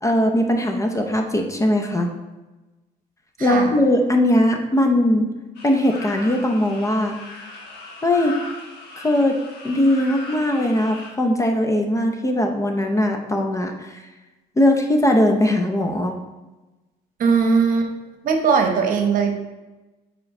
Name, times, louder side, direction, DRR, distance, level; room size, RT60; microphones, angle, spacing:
voice 1, 0.0-2.1 3.4-5.3 5.6-7.2 8.0-8.3 9.0-9.4 9.6-13.9 14.6-16.2, left 1 dB, 20° left, 4 dB, 0.7 m, -20 dB
voice 2, 3.4-3.8 17.2-17.9 18.2-19.3, right 5 dB, 55° right, 4 dB, 1.0 m, -19 dB
sound 1, 5.5-11.1, left 2 dB, 80° left, 1.5 m, -38 dB
4.5 x 4.4 x 5.4 m, 1.1 s
cardioid pair, 110°, 17 cm